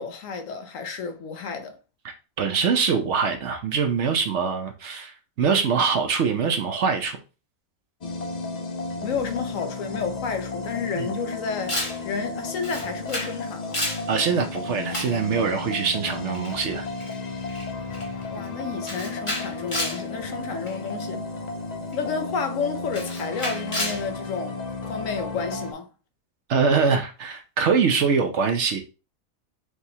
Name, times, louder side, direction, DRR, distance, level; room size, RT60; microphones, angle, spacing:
voice 1, 0.0-1.8 9.0-11.8 12.0-13.8 18.3-21.3 21.9-25.9, left 5 dB, 70° left, 1.0 m, -31 dB
voice 2, 2.4-7.2 11.0-11.1 14.1-16.8 26.5-28.8, right 5 dB, 65° right, 0.9 m, -23 dB
sound 1, 8.0-25.7, left 3 dB, 55° left, 0.4 m, -33 dB
Camera, 11.7-12.0 12.6-13.4 13.6-14.1 14.9-15.2 16.3-16.5 17.0-17.1 17.5-17.7 17.9-18.2 18.9-20.0 20.7-20.9 21.9-22.0 22.9-24.0, left 1 dB, 25° left, 1.1 m, -30 dB
4.8 x 3.1 x 2.8 m
omnidirectional pair, 1.4 m